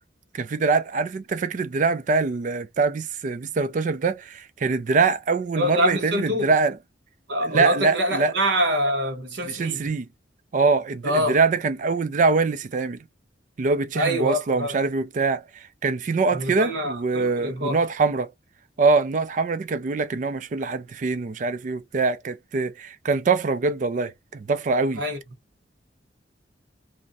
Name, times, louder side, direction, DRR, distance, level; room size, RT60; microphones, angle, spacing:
voice 1, 0.3-6.8 7.4-8.3 9.5-10.1 10.5-13.0 13.6-15.4 15.8-18.3 18.8-25.0, right 4 dB, 45° right, 0.3 m, -23 dB
voice 2, 5.6-6.5 7.3-9.8 11.0-11.4 13.9-14.8 16.3-17.8 25.0-25.2, equal, 75° right, 1.0 m, -25 dB
2.5 x 2.1 x 3.8 m
head